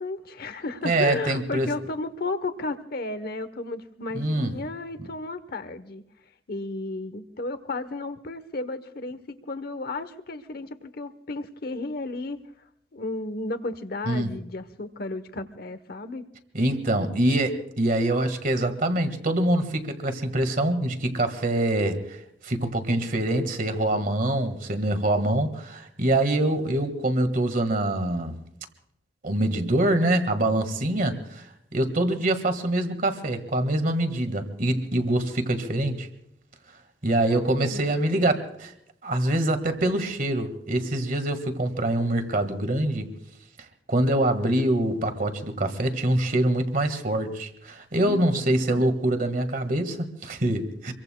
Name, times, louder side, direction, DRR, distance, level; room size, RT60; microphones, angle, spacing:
voice 1, 0.0-6.0 6.5-9.2 9.5-12.4 12.9-16.2 37.3-38.3 48.0-48.8, left 2 dB, 60° left, 1.0 m, -33 dB
voice 2, 0.8-1.7 4.1-4.5 14.1-14.3 16.5-28.4 29.2-36.1 37.0-38.7 39.0-43.1 43.9-50.9, right 1 dB, 50° right, 1.7 m, -25 dB
26.0 x 23.0 x 2.3 m
head